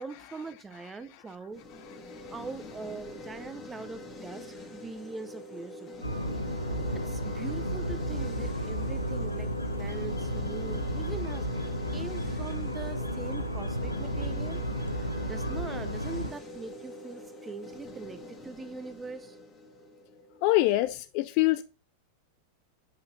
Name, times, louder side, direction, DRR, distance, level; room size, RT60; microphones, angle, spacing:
voice 1, 0.0-1.6 2.3-6.1 6.9-14.6 14.9-19.4, right 4 dB, 15° right, 0.6 m, -42 dB
sound 1, 1.5-20.6, left 1 dB, 20° left, 1.5 m, -45 dB
sound 2, 6.0-16.3, equal, 85° left, 0.6 m, -33 dB
voice 2, 20.4-21.6, left 17 dB, 45° left, 0.3 m, -24 dB
7.7 x 5.6 x 2.6 m
figure-of-eight pair, 90°, 0 cm